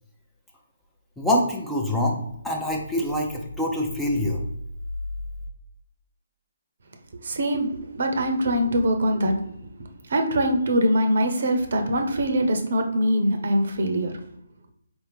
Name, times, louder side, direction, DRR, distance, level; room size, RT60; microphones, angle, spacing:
voice 1, 1.2-4.4, left 1 dB, 5° left, -2 dB, 0.6 m, -25 dB
voice 2, 7.2-9.3 10.1-14.1, equal, 60° right, 5 dB, 0.7 m, -23 dB
4.5 x 2.7 x 3.4 m, 0.77 s
figure-of-eight pair, 145°, 0 cm